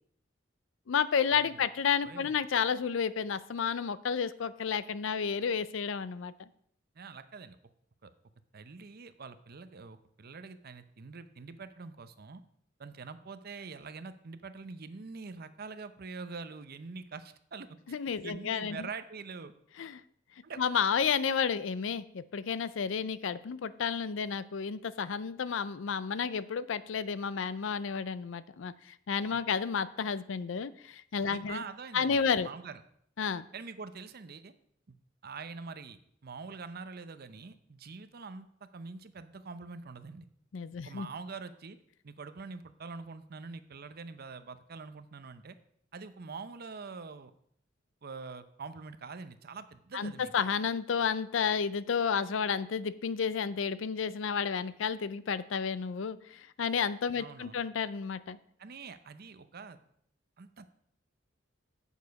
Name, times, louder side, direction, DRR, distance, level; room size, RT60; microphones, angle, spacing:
voice 1, 0.9-6.5 17.9-18.9 19.8-20.0 20.6-31.6 31.9-32.5 33.2-33.5 40.5-41.1 49.9-58.4, left 6 dB, 75° left, 16 dB, 0.5 m, -31 dB
voice 2, 7.0-7.6 8.0-8.1 8.5-12.4 12.8-17.7 18.2-19.5 20.4-20.6 29.3-29.4 31.3-32.8 33.5-34.5 34.9-35.0 35.2-40.3 40.8-41.8 42.0-45.6 45.9-47.3 48.0-50.3 57.2-57.6 58.6-59.8 60.4-60.7, right 4 dB, 50° right, 11 dB, 0.7 m, -45 dB
8.5 x 7.1 x 5.2 m, 0.68 s
head